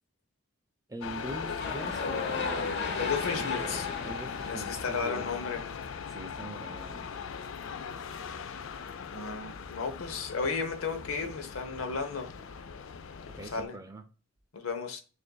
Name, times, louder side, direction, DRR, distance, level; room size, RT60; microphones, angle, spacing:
voice 1, 0.9-2.8 3.3-5.4 6.1-7.2 13.3-14.0, right 1 dB, 15° right, 0.4 m, -43 dB
sound 1, 1.0-13.6, left 6 dB, 70° left, 0.4 m, -39 dB
sound 2, 1.4-5.6, left 4 dB, 55° left, 0.9 m, -35 dB
voice 2, 2.9-3.9 4.5-5.6 9.0-12.3 13.5-13.8 14.5-15.0, left 5 dB, 90° left, 0.8 m, -34 dB
6.5 x 2.5 x 2.2 m
head